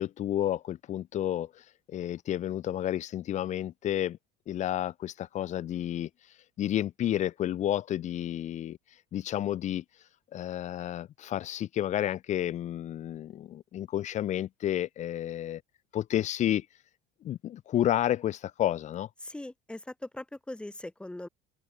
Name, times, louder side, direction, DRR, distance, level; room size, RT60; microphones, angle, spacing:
voice 1, 0.0-4.2 4.5-6.1 6.6-8.8 9.1-9.8 10.3-15.6 15.9-16.7 17.2-19.1, left 12 dB, 35° left, 1.9 m, -31 dB
voice 2, 19.2-21.3, left 1 dB, 5° left, 7.0 m, -40 dB
open air
cardioid pair, 155°, 20 cm